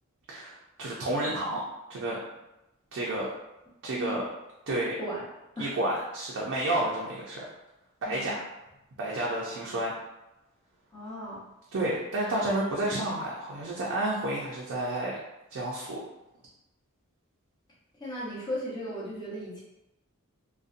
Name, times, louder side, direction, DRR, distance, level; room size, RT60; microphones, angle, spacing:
voice 1, 0.3-1.6 1.9-2.2 2.9-3.3 3.8-4.2 4.7-4.9 5.6-7.5 8.0-8.4 9.0-9.9 11.7-15.2 15.5-16.0, right 1 dB, 60° right, -4 dB, 0.4 m, -30 dB
voice 2, 4.7-5.2 5.6-5.7 8.0-8.4 10.9-11.4 18.0-19.6, equal, 20° left, -7 dB, 0.7 m, -36 dB
2.6 x 2.1 x 2.4 m, 0.94 s
head